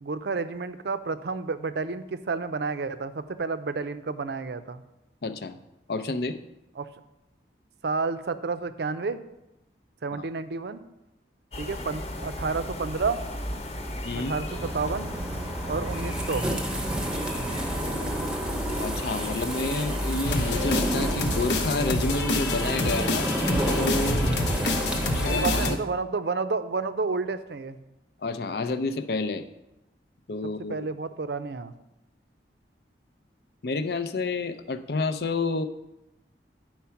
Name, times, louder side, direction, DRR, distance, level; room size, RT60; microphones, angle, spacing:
voice 1, 0.0-4.8 6.8-6.9 7.8-9.2 10.0-10.8 11.6-13.2 14.2-15.1 15.7-16.5 25.3-27.8 30.7-31.7, right 4 dB, 70° right, 12 dB, 0.5 m, -30 dB
voice 2, 5.2-5.6 5.9-6.4 14.0-14.3 18.8-23.3 23.6-24.3 25.1-25.8 28.2-29.4 30.3-30.9 33.6-35.6, left 3 dB, 65° left, 10 dB, 0.5 m, -29 dB
sound 1, 11.5-20.8, left 1 dB, 35° left, 1.0 m, -35 dB
sound 2, 14.5-25.8, right 1 dB, 5° right, 0.8 m, -30 dB
sound 3, 20.2-25.7, left 2 dB, 80° left, 0.9 m, -27 dB
9.6 x 4.5 x 5.7 m, 0.94 s
head